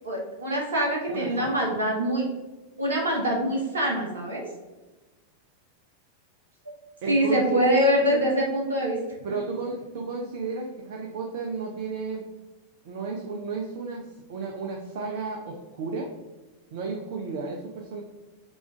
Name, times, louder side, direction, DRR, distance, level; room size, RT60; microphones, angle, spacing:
voice 1, 0.0-2.3 2.8-4.4 6.6-6.7 7.1-9.0, equal, 70° right, -1 dB, 1.0 m, -24 dB
voice 2, 1.1-1.6 7.0-7.4 8.1-8.2 9.2-12.3 12.8-16.1 16.7-18.0, right 4 dB, 50° right, 1 dB, 0.6 m, -33 dB
6.0 x 2.5 x 3.4 m, 1.2 s
figure-of-eight pair, 90°, 0 cm